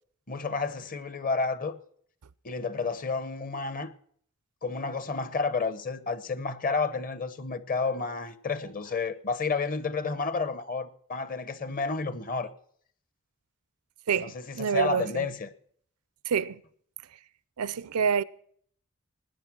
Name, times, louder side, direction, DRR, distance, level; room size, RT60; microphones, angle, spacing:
voice 1, 0.3-1.8 2.4-3.9 4.6-12.5 14.2-15.5, left 4 dB, 40° left, 0.9 m, -31 dB
voice 2, 14.1-15.2 16.3-16.6 17.6-18.2, right 6 dB, 85° right, 0.5 m, -27 dB
19.0 x 10.0 x 6.1 m
head